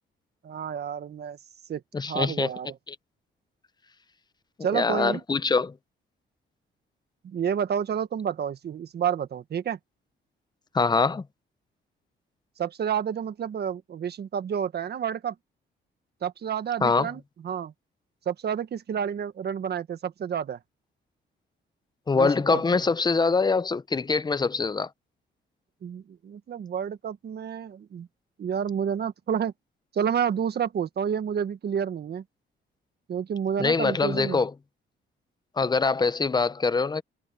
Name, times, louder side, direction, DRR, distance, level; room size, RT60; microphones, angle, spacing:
voice 1, 0.4-1.4 1.7-1.8 2.1-2.8 4.6-5.2 7.2-9.8 12.6-15.3 16.2-17.7 18.2-20.6 22.1-22.8 25.8-28.1 28.4-29.5 29.9-32.2 33.1-34.4, right 8 dB, 55° right, 1.6 m, -29 dB
voice 2, 1.9-2.5 2.9-3.0 4.7-5.7 10.7-11.2 16.8-17.1 22.1-24.9 33.6-34.5 35.6-37.0, left 4 dB, 20° left, 0.7 m, -24 dB
cardioid pair, 90°, 20 cm